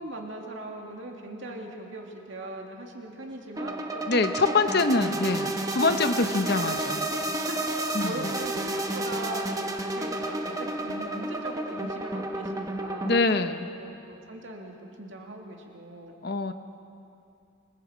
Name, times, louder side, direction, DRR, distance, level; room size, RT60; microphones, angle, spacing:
voice 1, 0.0-4.9 5.8-7.0 7.3-13.2 13.7-16.2, right 1 dB, 65° right, 1 dB, 2.6 m, -40 dB
sound 1, 3.6-13.2, right 1 dB, 15° right, 1.1 m, -31 dB
voice 2, 4.1-7.0 7.9-8.1 13.0-13.7 16.2-16.5, left 3 dB, 50° left, 8 dB, 0.9 m, -24 dB
26.5 x 22.5 x 5.2 m, 2.6 s
head